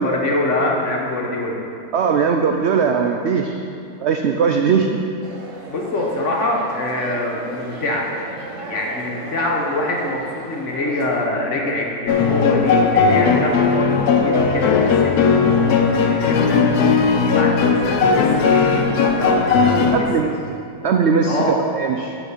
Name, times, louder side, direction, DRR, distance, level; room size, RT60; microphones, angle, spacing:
voice 1, 0.0-1.6 5.7-8.1 8.7-20.3 21.2-21.6, left 2 dB, 50° left, -1 dB, 1.4 m, -25 dB
voice 2, 1.9-3.6 4.0-5.0 19.9-20.3 20.8-22.2, right 6 dB, 80° right, 4 dB, 0.6 m, -19 dB
sound 1, 5.2-11.3, right 2 dB, 55° right, 1.3 m, -35 dB
sound 2, 12.1-20.0, left 5 dB, 70° left, 1.2 m, -17 dB
8.1 x 6.7 x 5.7 m, 2.6 s
omnidirectional pair, 1.7 m